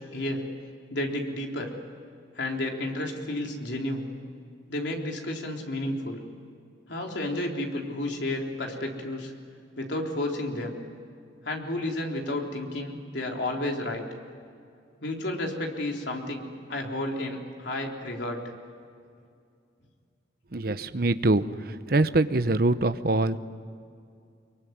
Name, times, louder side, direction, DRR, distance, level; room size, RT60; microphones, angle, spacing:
voice 1, 0.1-0.4 0.9-1.7 2.4-4.1 4.7-6.2 6.9-9.3 9.8-10.8 11.4-14.1 15.0-16.4 16.7-18.4, left 1 dB, 75° left, 1 dB, 3.7 m, -31 dB
voice 2, 20.5-23.4, right 2 dB, 50° right, 12 dB, 0.9 m, -24 dB
24.0 x 23.5 x 9.5 m, 2.4 s
head